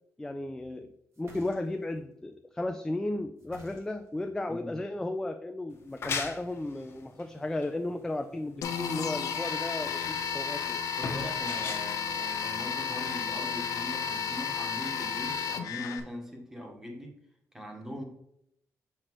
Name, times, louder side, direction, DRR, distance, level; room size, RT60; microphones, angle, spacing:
voice 1, 0.2-0.9 1.2-10.8, left 2 dB, 10° left, 6 dB, 0.3 m, -34 dB
sound 1, 1.1-2.0 3.4-4.2 5.9-6.7, right 2 dB, 50° right, 1.3 m, -53 dB
voice 2, 4.5-4.8 11.0-17.1 17.5-18.0, equal, 10° right, 1 dB, 1.2 m, -41 dB
sound 2, 5.7-13.1, left 5 dB, 45° left, 0.9 m, -39 dB
sound 3, 8.6-16.0, left 7 dB, 80° left, 0.7 m, -33 dB
6.5 x 5.8 x 3.0 m, 0.77 s
wide cardioid pair, 160°, 6 cm